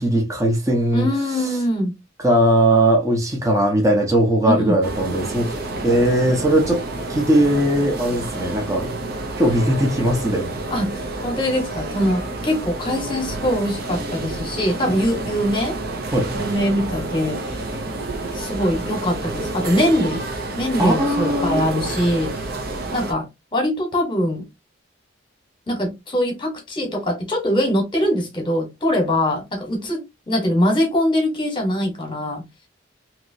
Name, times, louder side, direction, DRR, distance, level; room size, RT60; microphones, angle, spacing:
voice 1, 0.0-1.1 2.2-6.8 7.1-8.9 9.4-10.5 16.1-16.3 20.8-21.6, right 1 dB, 15° right, 0.8 m, -19 dB
voice 2, 0.9-1.9 4.4-4.8 10.7-15.8 16.3-17.6 18.3-20.2 20.6-22.5 22.9-24.5 25.7-32.4, equal, 25° left, 1.2 m, -22 dB
sound 1, 4.8-23.1, right 2 dB, 50° right, 0.7 m, -29 dB
3.0 x 2.9 x 2.7 m
head